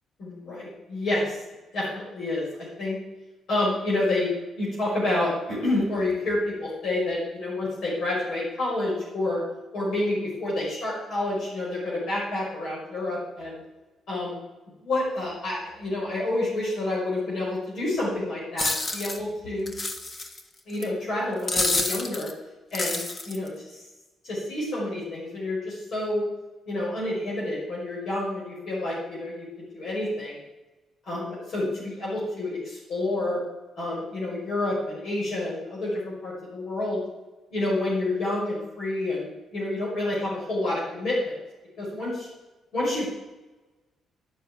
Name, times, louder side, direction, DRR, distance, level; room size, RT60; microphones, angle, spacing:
voice 1, 0.2-1.4 1.7-3.0 3.5-4.3 4.6-9.4 9.7-13.6 14.1-14.4 14.8-19.7 20.7-22.3 22.7-23.8 24.2-26.2 26.7-30.4 31.1-33.4 33.8-37.0 37.5-41.3 41.8-42.3 42.7-43.1, left 2 dB, 65° left, -5 dB, 5.6 m, -29 dB
sound 1, 18.6-19.2 19.7-20.4 20.8-20.9 21.5-22.3 22.7-23.5, left 2 dB, 35° left, 1.6 m, -28 dB
11.5 x 6.9 x 9.2 m, 1.1 s
cardioid pair, 90°, 0 cm